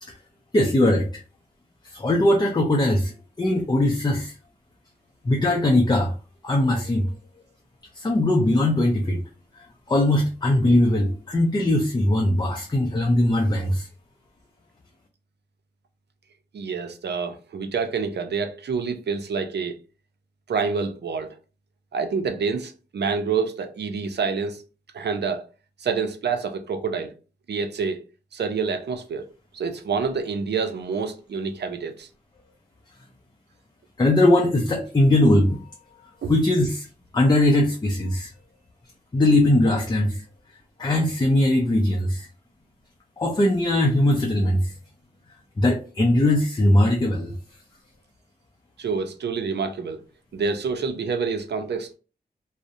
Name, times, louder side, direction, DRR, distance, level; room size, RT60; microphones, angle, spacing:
voice 1, 0.5-1.1 1.8-4.3 5.2-6.1 6.4-7.1 8.0-9.2 9.5-13.9 34.0-35.6 36.3-36.9 37.1-38.3 39.1-40.2 40.8-42.3 43.2-44.7 45.6-47.3, left 1 dB, 25° left, 0.5 m, -20 dB
voice 2, 16.5-19.8 20.5-21.4 21.9-24.6 24.9-25.5 25.8-27.1 27.5-28.0 28.3-29.3 29.5-32.1 36.2-36.3 48.8-50.0 50.3-51.9, right 5 dB, 75° right, 0.5 m, -27 dB
2.6 x 2.0 x 2.4 m
wide cardioid pair, 65°, 18 cm